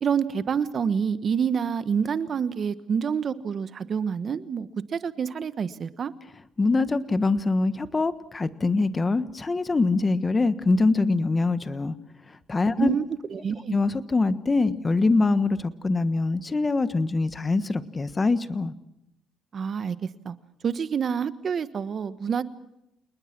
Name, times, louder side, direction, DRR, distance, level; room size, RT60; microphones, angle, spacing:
voice 1, 0.0-6.1 12.8-13.0 13.3-13.8 19.5-20.3 20.6-22.4, right 7 dB, 45° right, 13 dB, 1.3 m, -27 dB
voice 2, 6.6-12.0 12.5-12.9 13.7-18.7, left 3 dB, 25° left, 12 dB, 1.4 m, -24 dB
28.5 x 20.0 x 6.1 m, 0.85 s
cardioid pair, 110°, 0 cm